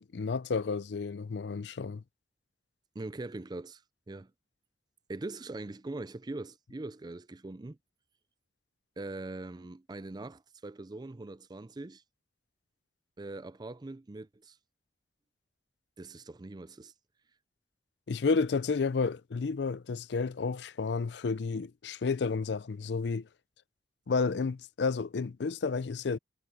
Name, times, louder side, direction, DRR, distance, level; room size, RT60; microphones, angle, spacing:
voice 1, 0.0-2.0 18.1-23.3 24.1-26.2, left 4 dB, 70° left, 0.5 m, -31 dB
voice 2, 2.9-3.8 4.1-4.3 5.1-7.8 9.0-12.0 13.2-14.6 16.0-16.9, right 2 dB, 25° right, 0.5 m, -42 dB
head